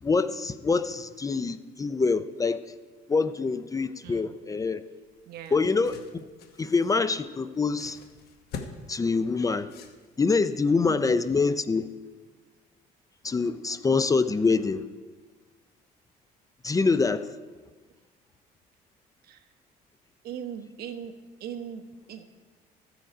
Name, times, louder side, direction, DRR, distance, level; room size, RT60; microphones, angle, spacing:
voice 1, 0.0-2.6 3.1-4.8 5.5-6.2 6.6-8.0 8.9-9.7 10.2-11.9 13.2-14.8 16.6-17.3, left 4 dB, 20° left, 0.5 m, -25 dB
voice 2, 4.0-4.3 5.3-5.6 10.8-11.2 19.2-19.4 20.2-21.1 21.4-22.2, right 9 dB, 65° right, 1.1 m, -39 dB
sound 1, 5.0-10.5, left 5 dB, 70° left, 1.2 m, -45 dB
14.0 x 7.8 x 4.9 m
cardioid pair, 110°, 17 cm